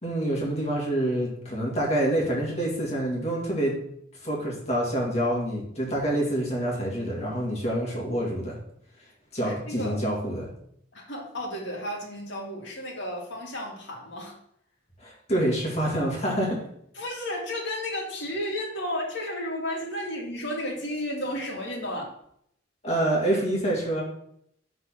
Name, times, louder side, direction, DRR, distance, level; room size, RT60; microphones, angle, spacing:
voice 1, 0.0-3.7 4.2-8.6 9.3-10.5 15.0-16.6 22.8-24.0, right 1 dB, 35° left, -3 dB, 2.0 m, -27 dB
voice 2, 9.4-10.0 10.9-14.4 16.9-22.1, left 1 dB, 65° left, -2 dB, 2.1 m, -33 dB
6.2 x 4.0 x 6.1 m, 0.70 s
head